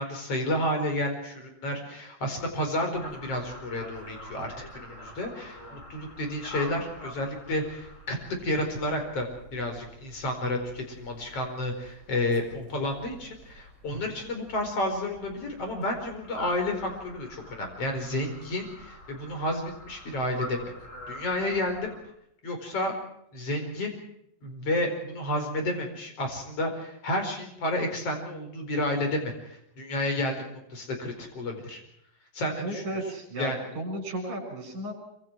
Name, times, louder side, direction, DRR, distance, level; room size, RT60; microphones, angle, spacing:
voice 1, 0.0-8.2 8.4-20.7 21.1-21.9 22.4-22.9 23.3-23.9 24.4-31.8 32.3-33.0 33.4-33.6, left 1 dB, 45° left, 4 dB, 5.6 m, -31 dB
sound 1, 2.9-22.0, left 1 dB, 20° left, 5.0 m, -46 dB
voice 2, 32.6-34.9, right 1 dB, 60° right, 4 dB, 8.2 m, -34 dB
26.0 x 25.5 x 4.8 m, 0.74 s
omnidirectional pair, 4.0 m